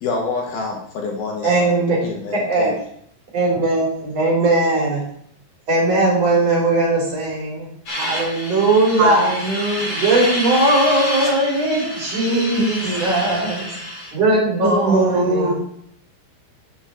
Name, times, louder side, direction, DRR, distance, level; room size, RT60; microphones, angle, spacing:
voice 1, 0.0-2.8, left 3 dB, 65° left, -1 dB, 3.1 m, -27 dB
voice 2, 1.4-2.0 2.3-2.7 3.3-5.0 5.7-7.7 7.9-9.3 9.9-13.7 14.1-15.5, right 2 dB, 35° right, -4 dB, 4.1 m, -19 dB
sound 1, 7.9-14.1, left 1 dB, 35° left, 3.2 m, -28 dB
voice 3, 9.0-10.0 11.7-11.9 12.2-13.0 13.4-13.6 14.6-15.5, right 2 dB, 65° right, -3 dB, 2.3 m, -22 dB
8.9 x 8.4 x 4.5 m, 0.66 s
omnidirectional pair, 5.3 m